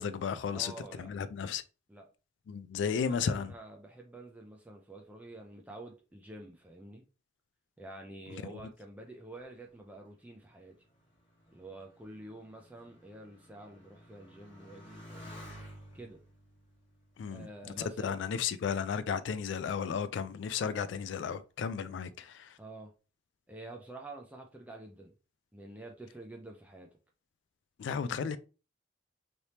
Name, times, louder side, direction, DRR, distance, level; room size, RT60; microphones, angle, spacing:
voice 1, 0.0-1.6 2.5-3.5 8.3-8.4 17.2-17.5 17.8-22.6 27.8-28.4, left 6 dB, 65° left, 0.3 m, -34 dB
voice 2, 0.5-1.1 1.9-2.1 2.8-7.0 7.8-10.7 11.5-15.4 15.9-16.2 17.3-18.2 22.6-22.9 23.5-25.1 25.5-26.9, right 2 dB, 10° right, 0.4 m, -48 dB
Motorcycle, 9.4-18.4 19.2-19.7, equal, 25° left, 1.6 m, -54 dB
3.3 x 2.8 x 2.9 m
head